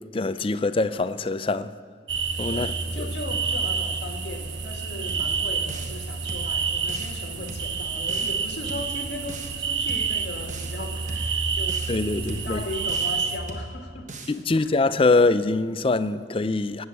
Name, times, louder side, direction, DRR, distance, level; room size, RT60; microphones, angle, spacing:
voice 1, 0.1-1.7 2.4-2.7 11.9-12.6 14.3-16.8, left 3 dB, 30° left, 0.4 m, -23 dB
sound 1, 2.1-13.4, right 5 dB, 80° right, 1.3 m, -29 dB
voice 2, 2.5-11.9 12.3-14.1 14.5-14.8, left 2 dB, 65° left, 1.5 m, -38 dB
sound 2, 5.1-6.0 6.3-7.2 7.5-8.4 8.7-9.6 9.9-10.8 11.1-12.0 12.3-13.2 13.5-14.4, right 2 dB, 40° right, 1.1 m, -39 dB
18.0 x 8.0 x 8.1 m
head